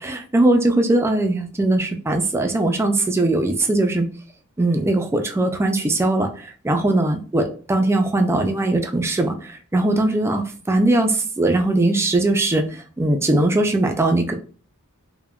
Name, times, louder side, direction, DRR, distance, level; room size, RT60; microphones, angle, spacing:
voice 1, 0.0-4.1 4.6-6.3 6.6-14.3, right 2 dB, 10° right, 4 dB, 0.3 m, -20 dB
3.5 x 2.1 x 2.2 m, 0.40 s
head